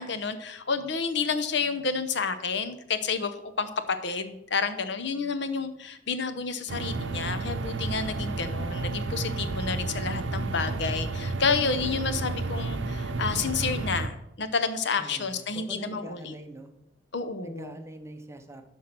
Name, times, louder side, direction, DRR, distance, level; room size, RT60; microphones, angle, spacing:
voice 1, 0.0-3.3 3.6-3.7 4.0-16.3 17.1-17.8, left 5 dB, 65° left, 11 dB, 0.8 m, -30 dB
sound 1, 6.7-14.1, right 3 dB, 75° right, 0.7 m, -31 dB
voice 2, 15.0-16.7 17.4-18.6, right 1 dB, 15° right, 6 dB, 0.9 m, -43 dB
12.0 x 4.6 x 5.9 m, 0.86 s
head